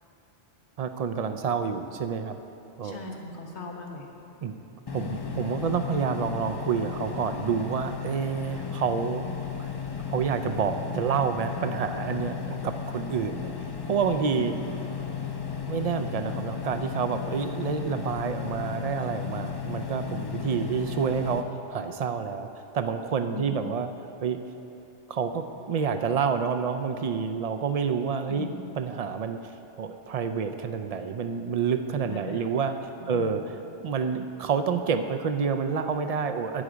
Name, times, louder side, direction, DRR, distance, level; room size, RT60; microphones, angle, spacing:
voice 1, 0.8-2.4 2.8-3.0 4.4-4.5 4.9-9.3 9.6-9.7 10.1-14.6 15.7-21.5 21.7-22.5 22.7-23.9 24.2-24.4 25.1-29.5 29.8-32.8 33.1-36.6, right 6 dB, 65° right, 8 dB, 0.3 m, -28 dB
voice 2, 2.8-4.0 14.3-14.5 23.3-23.6 28.3-28.6 32.0-32.4 33.0-33.3, left 3 dB, 65° left, 1 dB, 1.5 m, -38 dB
sound 1, 4.9-21.4, left 7 dB, 35° left, 0.3 m, -35 dB
11.5 x 9.4 x 5.0 m, 2.8 s
omnidirectional pair, 1.2 m